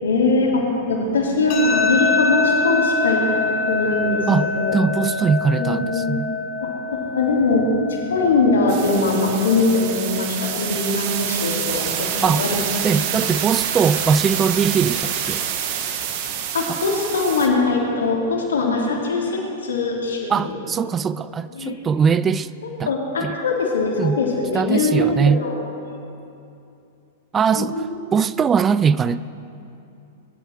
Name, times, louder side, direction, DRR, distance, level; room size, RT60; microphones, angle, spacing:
voice 1, 0.0-4.8 5.5-6.2 6.6-12.6 16.5-20.6 21.5-21.8 22.6-25.6 27.5-27.9, left 3 dB, 70° left, 3.1 m, -22 dB
sound 1, 1.5-14.5, left 4 dB, 40° left, 2.1 m, -26 dB
voice 2, 4.7-6.3 12.2-12.4 12.8-15.4 16.7-16.8 20.3-22.5 22.8-22.9 23.2-23.4 24.0-24.2 24.5-25.4 27.3-27.7 28.1-29.2, right 6 dB, 20° right, 0.3 m, -20 dB
sound 2, 8.7-17.5, right 9 dB, 45° right, 1.4 m, -27 dB
21.0 x 11.0 x 4.7 m
figure-of-eight pair, 100°, 0 cm